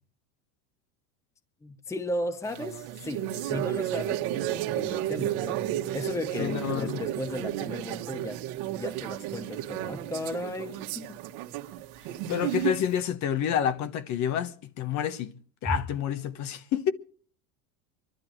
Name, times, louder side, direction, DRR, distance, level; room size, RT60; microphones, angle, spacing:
voice 1, 1.6-5.6 5.9-8.4 8.8-11.2 15.7-15.8, left 1 dB, 5° left, 0.9 m, -35 dB
sound 1, 2.5-13.0, right 13 dB, 60° right, 1.8 m, -33 dB
voice 2, 6.4-7.0 12.3-15.3 15.6-16.9, left 9 dB, 40° left, 1.2 m, -28 dB
24.0 x 12.0 x 4.5 m
supercardioid pair, 130°, 42 cm